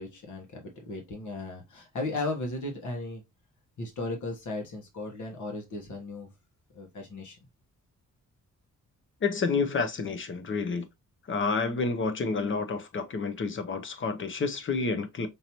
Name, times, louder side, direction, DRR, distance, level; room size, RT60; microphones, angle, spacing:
voice 1, 0.0-3.2 3.8-6.3 6.7-7.4, left 2 dB, 65° left, 1.4 m, -36 dB
voice 2, 9.2-10.9 11.3-15.3, left 4 dB, 40° left, 0.7 m, -29 dB
5.3 x 2.8 x 2.9 m
wide cardioid pair, 145°, 32 cm